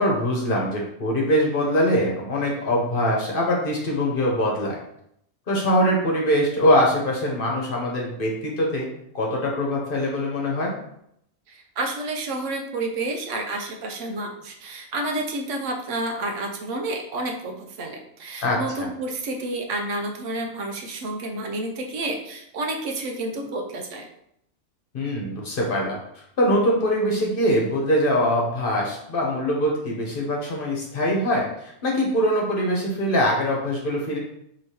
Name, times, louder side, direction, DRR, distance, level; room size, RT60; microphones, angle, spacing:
voice 1, 0.0-4.7 5.5-8.9 9.1-10.7 18.4-18.9 24.9-26.0 26.4-34.2, equal, 50° left, -2 dB, 1.0 m, -23 dB
voice 2, 11.5-24.1, right 2 dB, 75° right, 3 dB, 1.0 m, -30 dB
4.8 x 3.0 x 2.9 m, 0.74 s
omnidirectional pair, 1.3 m